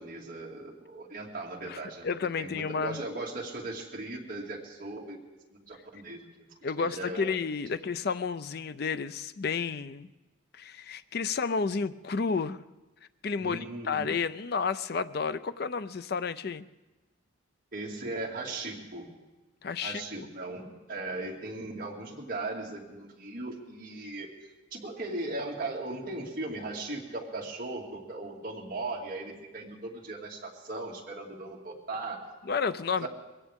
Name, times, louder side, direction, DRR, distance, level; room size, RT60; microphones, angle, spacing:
voice 1, 0.0-2.1 2.4-5.2 5.5-6.3 6.8-7.4 7.8-7.9 13.4-14.1 17.7-19.1 19.8-24.3 24.7-32.2 33.0-33.1, right 2 dB, 45° right, -2 dB, 2.4 m, -38 dB
voice 2, 2.0-3.1 6.6-10.1 10.5-12.6 13.2-16.6 19.6-20.3 32.5-33.1, left 5 dB, 50° left, 13 dB, 0.4 m, -31 dB
22.0 x 17.0 x 3.6 m, 1.1 s
head